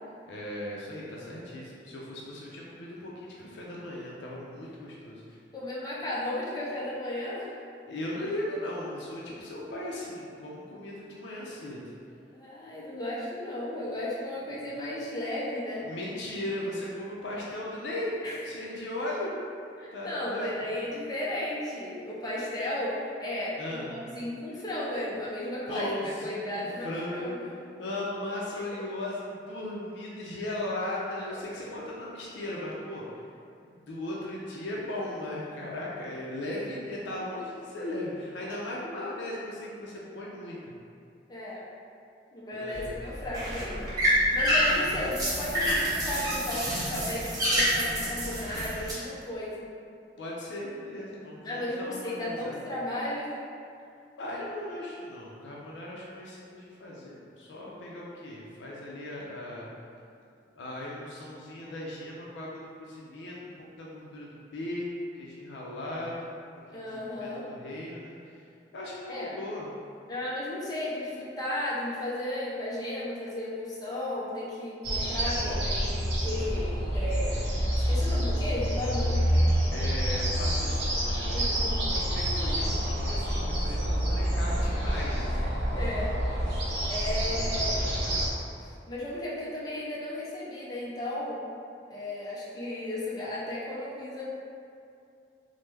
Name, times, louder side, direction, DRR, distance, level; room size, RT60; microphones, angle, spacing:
voice 1, 0.3-5.4 7.9-11.8 15.8-18.1 18.4-19.3 19.9-20.5 23.6-23.9 25.7-27.4 27.8-33.2 33.7-40.6 42.5-42.9 50.2-52.6 54.2-59.7 60.5-63.4 63.8-66.4 66.7-68.4 68.7-69.7 75.4-75.7 79.7-85.3 87.0-87.5, left 1 dB, 80° left, -5 dB, 0.4 m, -37 dB
voice 2, 5.5-7.5 12.3-15.9 18.2-18.4 19.8-25.9 26.2-27.4 31.2-31.3 41.3-41.6 42.3-49.7 51.4-53.4 66.7-67.5 69.1-69.3 70.1-77.5 77.7-79.2 81.3-81.8 85.3-85.4 85.7-86.2 86.9-87.8 88.6-91.4 91.9-94.3, left 1 dB, 20° left, -7 dB, 0.4 m, -34 dB
sound 1, 42.7-48.9, equal, 20° right, 0.9 m, -27 dB
sound 2, 74.8-88.3, equal, 65° right, 0.7 m, -28 dB
3.2 x 2.0 x 3.2 m, 2.5 s
head